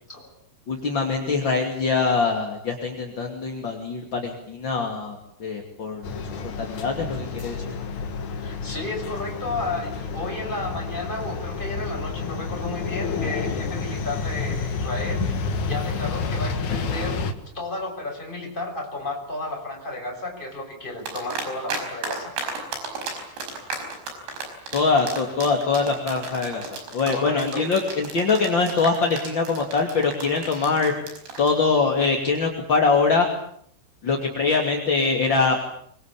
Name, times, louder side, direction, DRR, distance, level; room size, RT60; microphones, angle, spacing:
voice 1, 0.7-6.1 6.4-7.7 24.7-30.9 31.4-33.3 34.0-35.6, left 4 dB, 30° left, 2 dB, 2.5 m, -23 dB
sound 1, 6.0-17.3, left 4 dB, 55° left, 2.3 m, -29 dB
voice 2, 8.4-15.2 15.6-22.3 27.1-27.7 30.5-30.7, left 2 dB, 10° left, 1 dB, 6.3 m, -32 dB
sound 2, 21.1-21.8 22.0-31.5, right 4 dB, 65° right, 7.4 m, -33 dB
24.5 x 24.0 x 8.6 m, 0.67 s
omnidirectional pair, 5.5 m